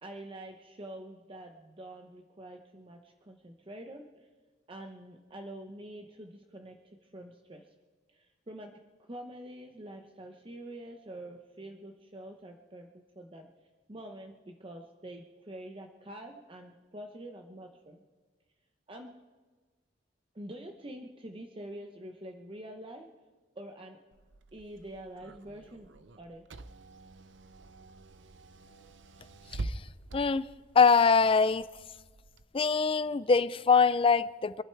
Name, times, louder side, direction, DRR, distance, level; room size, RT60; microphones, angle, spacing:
voice 1, 0.0-4.3 4.7-7.7 8.1-12.9 13.1-13.5 13.9-18.0 18.9-19.2 20.3-23.1 23.6-24.0 24.5-25.9 26.2-26.5, right 1 dB, 30° right, 3 dB, 0.9 m, -46 dB
Car / Engine, 24.1-32.4, right 2 dB, 75° right, 0.7 m, -46 dB
voice 2, 30.1-30.4 30.8-31.7 32.5-34.6, left 5 dB, 30° left, 16 dB, 0.4 m, -23 dB
23.5 x 12.0 x 4.6 m, 1.4 s
head